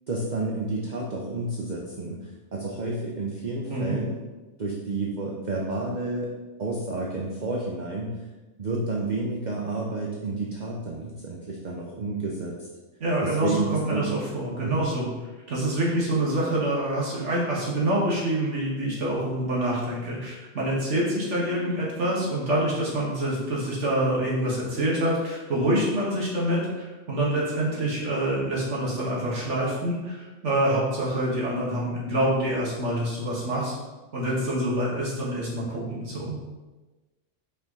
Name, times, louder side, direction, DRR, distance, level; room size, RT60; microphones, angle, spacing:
voice 1, 0.1-4.2 4.6-6.3 6.6-8.2 8.6-12.7 13.2-14.1 14.6-14.8, right 2 dB, 45° right, -2 dB, 0.8 m, -30 dB
voice 2, 13.0-15.1 15.5-33.8 34.1-36.4, right 1 dB, 75° right, -5 dB, 2.0 m, -26 dB
5.7 x 4.5 x 4.0 m, 1.2 s
omnidirectional pair, 1.2 m